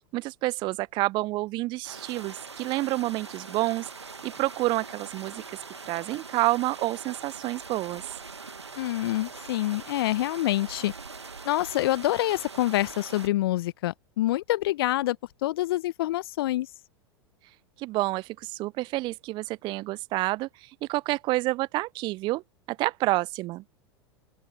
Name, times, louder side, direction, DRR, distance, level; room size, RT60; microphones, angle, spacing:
voice 1, 0.1-5.6 5.9-8.1 17.8-22.4 22.7-23.6, right 19 dB, 35° right, 0.4 m, -29 dB
sound 1, 1.8-13.3, right 4 dB, 85° right, 1.9 m, -42 dB
voice 2, 8.8-10.9 11.4-15.2 15.4-16.7, left 15 dB, 60° left, 1.3 m, -26 dB
open air
figure-of-eight pair, 90°, 14 cm